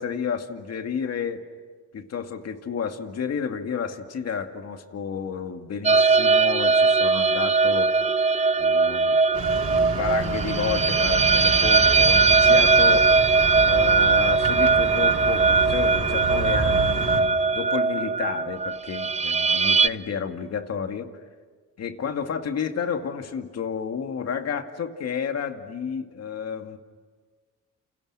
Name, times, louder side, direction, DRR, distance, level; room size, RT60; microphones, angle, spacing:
voice 1, 0.0-1.4 1.9-7.9 8.6-9.2 9.8-13.2 13.6-17.2 17.5-21.1 21.8-26.8, left 6 dB, 55° left, 6 dB, 2.2 m, -31 dB
sound 1, 5.8-19.9, right 4 dB, 20° right, 0.7 m, -20 dB
sound 2, 9.3-17.2, right 3 dB, 55° right, 5.5 m, -30 dB
29.0 x 29.0 x 6.3 m, 1.5 s
cardioid pair, 90°, 30 cm